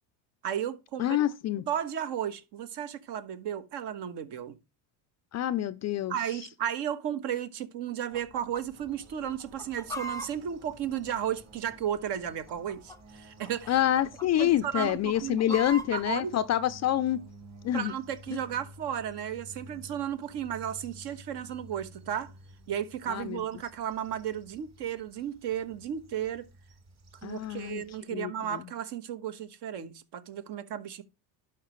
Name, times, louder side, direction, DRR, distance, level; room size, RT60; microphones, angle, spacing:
voice 1, 0.4-1.2 1.7-4.6 6.1-13.7 14.3-15.6 15.9-16.3 17.7-22.3 22.7-26.5 27.2-31.0, right 9 dB, 55° right, 1.3 m, -34 dB
voice 2, 1.0-1.6 5.3-6.1 13.7-17.2 17.6-17.9 18.3-18.4 23.1-23.4 27.2-27.8 28.1-28.6, left 12 dB, 35° left, 0.4 m, -27 dB
Chicken rooster, 8.1-8.6 8.9-9.0 9.4-11.7 12.4-13.2 13.4-13.7 14.0-14.5 14.9-16.0, right 1 dB, 5° left, 0.7 m, -39 dB
sound 1, 8.7-28.0, right 1 dB, 35° right, 1.9 m, -53 dB
11.5 x 4.8 x 3.1 m
cardioid pair, 115°, 48 cm